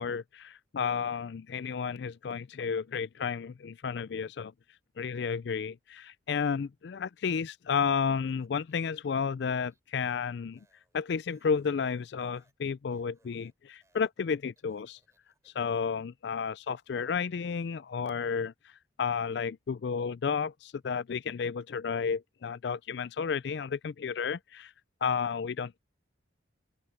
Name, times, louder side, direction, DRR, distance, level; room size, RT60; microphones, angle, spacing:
voice 1, 0.0-4.5 5.0-10.7 10.9-15.0 15.5-18.5 19.0-24.7 25.0-25.8, left 6 dB, 60° left, 0.4 m, -32 dB
Speech, 8.2-16.0, right 2 dB, 15° right, 7.7 m, -72 dB
open air
head